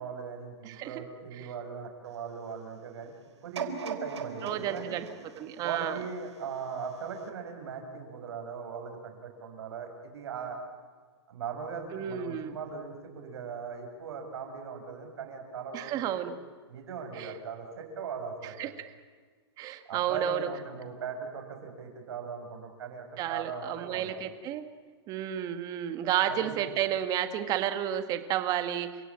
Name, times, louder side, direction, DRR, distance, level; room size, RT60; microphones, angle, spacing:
voice 1, 0.0-3.1 3.4-5.0 5.6-10.6 11.3-16.2 16.7-18.7 19.9-24.1 26.3-26.7, right 6 dB, 70° right, 4 dB, 7.4 m, -39 dB
voice 2, 0.6-1.0 1.4-1.5 4.4-5.1 5.4-6.0 11.9-12.6 15.7-16.4 17.1-17.3 18.6-18.7 19.6-20.5 23.2-24.6 25.1-28.9, right 10 dB, 25° right, 9 dB, 1.9 m, -31 dB
sound 1, 3.5-6.6 7.2-7.3, right 6 dB, 85° right, 4.0 m, -39 dB
29.5 x 16.5 x 9.1 m, 1.5 s
hypercardioid pair, 150°, 14 cm